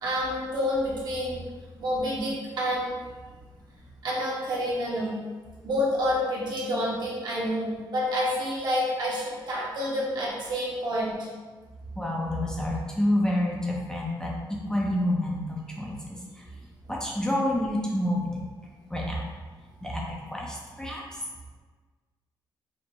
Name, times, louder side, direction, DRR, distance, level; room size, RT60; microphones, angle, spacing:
voice 1, 0.0-1.4 1.8-2.9 4.0-5.2 5.6-11.3, equal, 55° right, -6 dB, 1.1 m, -28 dB
voice 2, 12.0-16.4 16.9-18.3 18.9-19.2 19.8-21.0, left 1 dB, 10° left, -3 dB, 0.5 m, -28 dB
4.9 x 2.0 x 3.3 m, 1.4 s
wide cardioid pair, 140°, 8 cm